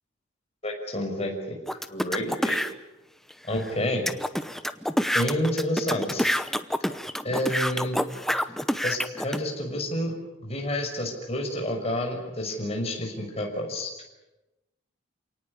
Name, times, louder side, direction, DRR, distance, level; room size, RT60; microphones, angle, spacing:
voice 1, 0.6-1.6 1.9-2.6 3.5-4.1 5.1-6.3 7.2-8.0 8.8-10.1 10.4-13.9, left 1 dB, 30° left, 2 dB, 5.8 m, -29 dB
sound 1, 1.7-2.7 3.3-3.4 3.6-3.7 4.1-9.4, equal, ahead, 0.8 m, -27 dB
28.5 x 18.5 x 9.9 m, 1.0 s
head